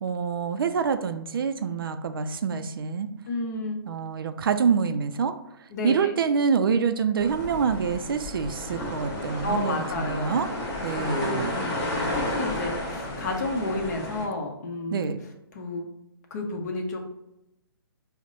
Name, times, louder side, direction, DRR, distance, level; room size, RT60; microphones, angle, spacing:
voice 1, 0.0-3.1 3.8-10.5 10.8-11.7 14.9-15.2, right 6 dB, 65° right, 9 dB, 0.4 m, -26 dB
voice 2, 3.3-3.8 5.7-6.1 9.4-10.3 10.9-15.1 15.5-15.9 16.3-17.1, left 2 dB, 45° left, 2 dB, 0.8 m, -31 dB
sound 1, 7.2-14.2, left 1 dB, 15° left, 0.9 m, -32 dB
5.1 x 2.1 x 3.8 m, 0.88 s
hypercardioid pair, 150°, 13 cm